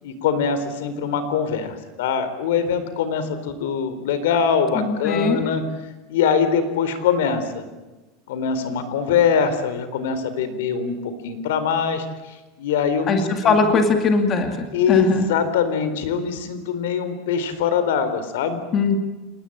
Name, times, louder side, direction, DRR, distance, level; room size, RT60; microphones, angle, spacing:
voice 1, 0.0-5.6 6.1-7.6 8.3-13.8 14.7-18.6, left 6 dB, 85° left, 11 dB, 4.2 m, -23 dB
voice 2, 4.7-5.4 13.1-14.6 14.9-15.3 18.7-19.0, left 4 dB, 20° left, 5 dB, 2.3 m, -20 dB
28.5 x 19.5 x 8.9 m, 1.1 s
supercardioid pair, 175°, 0 cm